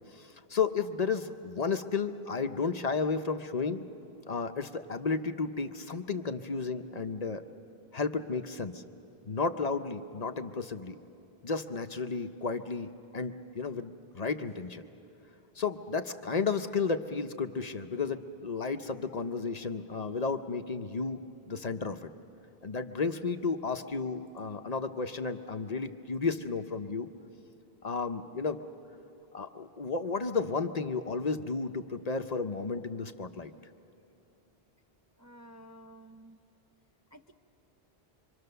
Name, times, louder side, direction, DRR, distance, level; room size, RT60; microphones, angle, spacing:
voice 1, 0.1-3.8 4.3-7.4 7.9-8.8 9.3-11.0 11.4-14.8 15.6-22.1 22.6-27.1 27.8-28.6 29.3-33.5, left 4 dB, 45° left, 8 dB, 0.7 m, -33 dB
voice 2, 35.2-36.4 37.1-37.3, right 1 dB, 20° right, 3 dB, 0.6 m, -52 dB
25.0 x 25.0 x 6.7 m, 2.9 s
omnidirectional pair, 1.0 m